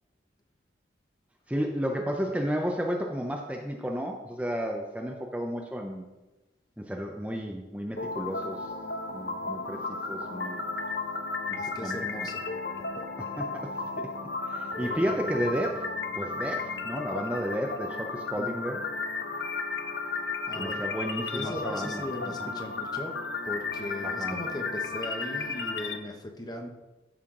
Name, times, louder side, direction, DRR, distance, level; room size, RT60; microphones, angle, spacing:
voice 1, 1.5-6.1 6.8-8.7 9.1-9.8 10.1-10.7 11.5-12.3 13.4-14.1 14.4-15.9 16.1-18.9 20.6-22.5 24.0-24.4, equal, 5° right, 1 dB, 0.6 m, -32 dB
sound 1, 8.0-26.0, left 4 dB, 70° left, 0.8 m, -34 dB
voice 2, 11.6-12.4 14.7-15.4 18.3-18.6 20.5-20.9 21.3-23.2 23.5-26.7, left 1 dB, 20° left, 3 dB, 1.0 m, -38 dB
13.0 x 5.7 x 3.8 m, 1.1 s
head